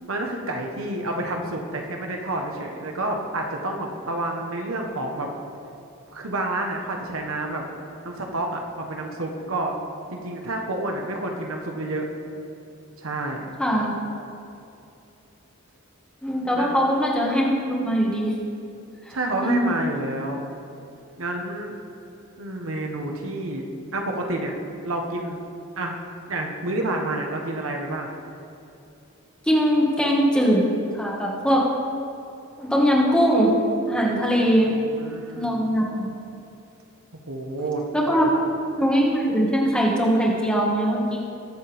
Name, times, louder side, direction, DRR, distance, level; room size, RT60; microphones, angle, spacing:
voice 1, 0.1-5.3 6.1-7.6 8.0-9.7 10.1-12.1 13.0-13.4 16.5-16.7 19.1-20.4 21.2-21.7 22.4-24.5 24.8-25.4 25.8-25.9 26.3-28.1 34.5-35.7 37.3-37.8 38.2-38.4, right 2 dB, 75° right, 2 dB, 1.3 m, -29 dB
voice 2, 13.6-13.9 16.2-18.3 19.4-19.7 29.5-30.6 30.9-31.7 32.6-33.5 33.9-34.7 35.3-36.1 37.9-38.3 38.8-41.2, equal, 5° left, -4 dB, 1.7 m, -21 dB
21.0 x 7.4 x 3.5 m, 2.7 s
head